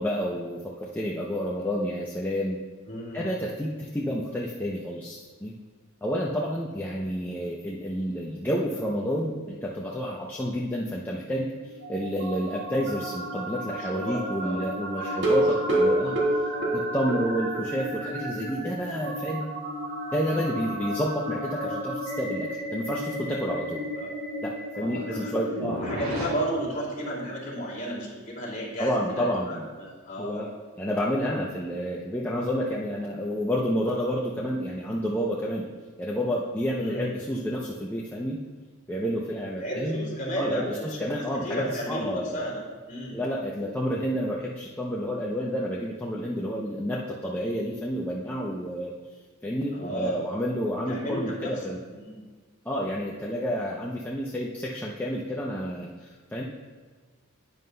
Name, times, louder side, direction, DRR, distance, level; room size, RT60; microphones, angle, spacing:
voice 1, 0.0-2.6 3.1-5.5 6.0-11.5 11.9-16.2 16.7-19.5 20.1-23.8 24.4-25.8 28.8-29.7 30.2-30.5 30.8-35.7 36.0-38.4 38.9-40.0 40.3-42.4 43.1-48.9 49.4-51.8 52.7-56.4, equal, 10° left, -4 dB, 0.5 m, -30 dB
voice 2, 2.9-3.3 13.7-15.4 15.7-15.8 16.5-16.8 24.0-24.1 24.8-25.3 25.8-30.5 36.8-37.1 39.6-42.6 42.9-43.2 49.7-50.4 50.9-51.6 51.9-52.2, right 1 dB, 35° left, -4 dB, 2.4 m, -34 dB
sound 1, 11.2-26.2, right 1 dB, 75° right, 2.7 m, -34 dB
sound 2, 15.1-17.7 18.0-18.1 18.5-18.6 18.9-19.0, right 1 dB, 50° right, 1.6 m, -25 dB
10.5 x 9.4 x 2.2 m, 1.4 s
head